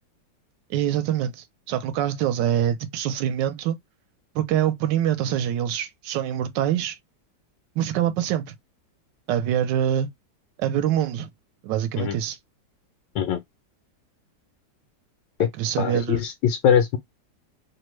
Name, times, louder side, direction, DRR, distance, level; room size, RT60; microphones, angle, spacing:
voice 1, 0.7-3.8 4.3-7.0 7.8-8.5 9.3-10.1 10.6-11.3 11.6-12.4 15.6-16.2, right 10 dB, 80° right, 1.2 m, -25 dB
voice 2, 15.8-17.0, left 8 dB, 85° left, 1.3 m, -22 dB
3.2 x 2.1 x 3.0 m
omnidirectional pair, 1.9 m